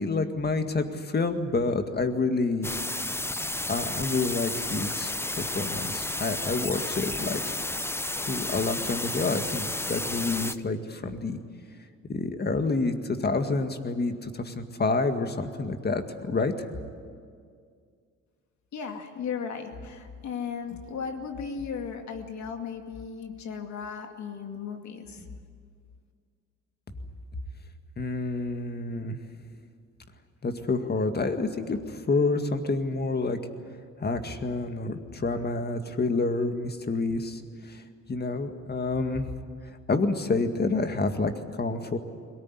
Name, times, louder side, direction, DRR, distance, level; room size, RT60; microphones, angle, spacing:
voice 1, 0.0-2.7 3.7-7.5 8.3-11.4 12.1-16.5 28.0-29.2 30.4-33.4 34.0-37.8 38.1-39.3 39.9-42.0, left 3 dB, 35° left, 7 dB, 2.0 m, -28 dB
sound 1, 2.6-10.6, left 2 dB, 10° left, 0.7 m, -32 dB
voice 2, 18.7-25.3, left 6 dB, 65° left, 4 dB, 2.4 m, -36 dB
22.0 x 18.5 x 9.8 m, 2.2 s
cardioid pair, 90°, 30 cm